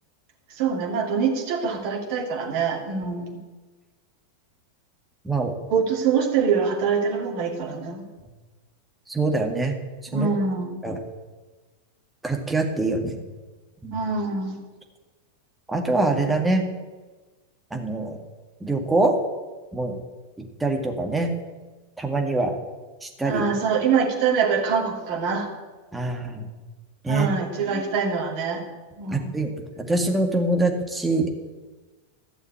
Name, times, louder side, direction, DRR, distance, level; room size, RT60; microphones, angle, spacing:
voice 1, 0.6-3.4 5.7-8.1 10.1-10.7 13.9-14.6 23.2-25.5 27.1-28.6 29.0-29.3, right 5 dB, 45° right, 1 dB, 2.5 m, -24 dB
voice 2, 9.1-9.8 10.1-10.3 10.8-11.0 12.2-13.2 13.8-14.0 15.7-16.7 17.7-18.2 18.6-19.1 19.7-20.0 20.4-21.3 22.0-22.5 23.0-23.4 25.9-26.5 27.0-27.3 29.1-29.5 29.9-31.3, right 2 dB, 10° right, 2 dB, 2.0 m, -24 dB
13.5 x 7.1 x 8.7 m, 1.3 s
figure-of-eight pair, 90°, 0 cm